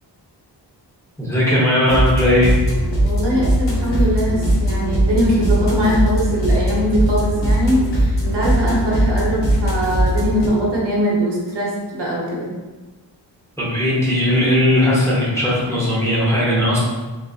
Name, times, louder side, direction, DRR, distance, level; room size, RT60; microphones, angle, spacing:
voice 1, 1.2-2.5 13.6-16.8, left 1 dB, 5° left, -7 dB, 0.7 m, -17 dB
sound 1, 1.9-10.5, right 1 dB, 75° left, 1.0 m, -19 dB
voice 2, 3.0-12.5, equal, 70° right, -5 dB, 0.9 m, -21 dB
3.6 x 2.5 x 2.4 m, 1.2 s
wide cardioid pair, 135°, 43 cm